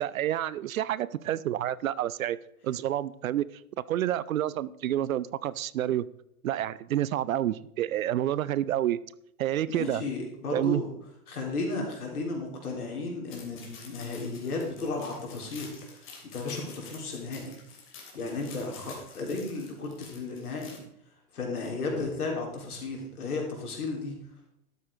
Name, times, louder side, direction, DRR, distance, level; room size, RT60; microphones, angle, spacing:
voice 1, 0.0-2.4 2.6-3.5 3.9-6.0 6.4-9.0 9.4-10.0 10.5-10.8, right 12 dB, 60° right, 19 dB, 0.6 m, -29 dB
voice 2, 9.7-10.9 11.3-16.1 16.3-17.6 18.1-20.8 21.3-24.1, left 3 dB, 75° left, 0 dB, 3.8 m, -34 dB
sound 1, 13.3-20.8, left 5 dB, 25° left, 3.0 m, -49 dB
12.5 x 8.6 x 3.7 m, 0.76 s
hypercardioid pair, 115°, 46 cm